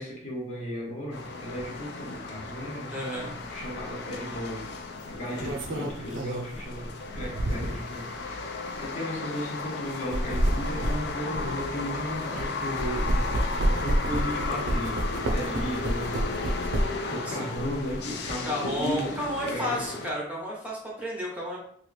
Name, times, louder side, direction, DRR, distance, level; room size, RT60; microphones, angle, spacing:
voice 1, 0.0-4.7 5.0-16.6 17.1-20.0, equal, 40° left, -3 dB, 1.0 m, -35 dB
sound 1, 1.1-20.1, left 4 dB, 60° left, 0.4 m, -35 dB
voice 2, 2.9-3.3 17.2-17.4 18.4-21.6, equal, 10° right, -4 dB, 0.7 m, -32 dB
sound 2, 3.6-3.8 5.1-7.9 8.6-8.8 9.9-12.5 12.8-17.1 17.5-18.3, right 1 dB, 85° right, 0.5 m, -29 dB
3.0 x 2.5 x 3.1 m, 0.63 s
head